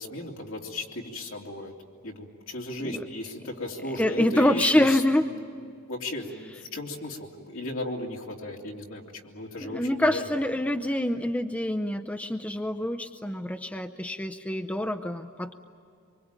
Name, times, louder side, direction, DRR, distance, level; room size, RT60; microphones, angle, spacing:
voice 1, 0.0-1.7 2.0-10.3, left 2 dB, 65° left, -1 dB, 3.2 m, -36 dB
voice 2, 4.0-5.2 9.7-15.5, left 1 dB, 5° left, 7 dB, 0.6 m, -26 dB
25.0 x 24.0 x 8.9 m, 2.4 s
head